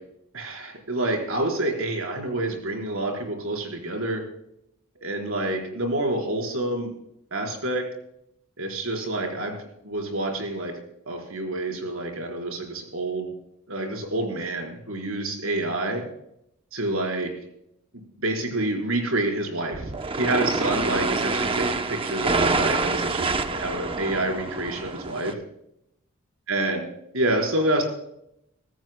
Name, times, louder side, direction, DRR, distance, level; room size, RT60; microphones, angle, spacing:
voice 1, 0.3-4.2 5.0-6.9 7.3-7.8 8.6-9.6 9.8-10.7 11.1-13.3 13.7-16.1 16.7-17.3 18.2-19.8 20.1-25.4 26.5-26.8 27.1-27.8, right 2 dB, 75° right, 2 dB, 4.3 m, -28 dB
sound 1, 19.7-25.3, right 3 dB, 25° right, 0.7 m, -26 dB
24.0 x 14.5 x 2.2 m, 0.77 s
head